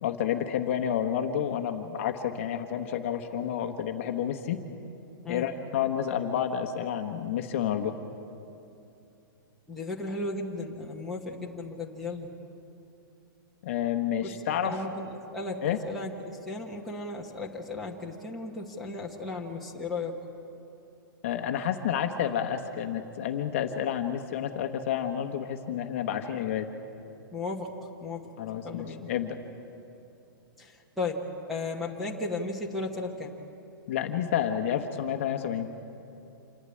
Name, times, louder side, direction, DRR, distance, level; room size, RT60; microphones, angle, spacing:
voice 1, 0.0-4.6 5.3-7.9 13.6-14.8 15.6-15.8 21.2-26.7 28.4-29.3 33.9-35.7, left 9 dB, 35° left, 5 dB, 1.1 m, -30 dB
voice 2, 9.7-12.3 14.2-14.3 14.6-20.1 27.3-28.3 28.6-29.0 30.6-31.2 31.5-33.3, left 3 dB, ahead, -5 dB, 1.1 m, -35 dB
27.0 x 12.0 x 9.7 m, 2.8 s
hypercardioid pair, 175°, 12 cm